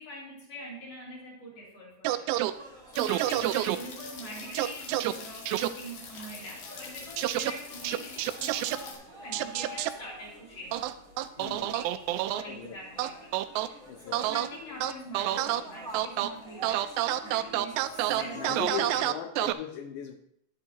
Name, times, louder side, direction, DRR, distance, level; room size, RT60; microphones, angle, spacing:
voice 1, 0.0-2.3 2.9-10.8 11.4-19.1, equal, 40° left, -4 dB, 3.8 m, -44 dB
sound 1, 2.1-2.5 3.0-3.8 4.6-5.1 5.5-5.7 7.2-7.5 7.9-8.8 9.3-9.9 10.7-12.4 13.0-13.7 14.1-14.5 14.8-15.6 15.9-16.3 16.6-19.5, right 14 dB, 85° right, 2.7 m, -28 dB
sound 2, 2.5-18.6, right 1 dB, 15° right, 1.4 m, -48 dB
sound 3, 2.9-8.9, left 5 dB, 60° left, 2.9 m, -45 dB
voice 2, 11.4-11.7 12.5-12.8 13.8-14.2 18.1-20.1, left 8 dB, 90° left, 5 dB, 1.8 m, -39 dB
10.5 x 10.5 x 2.9 m, 0.72 s
omnidirectional pair, 4.8 m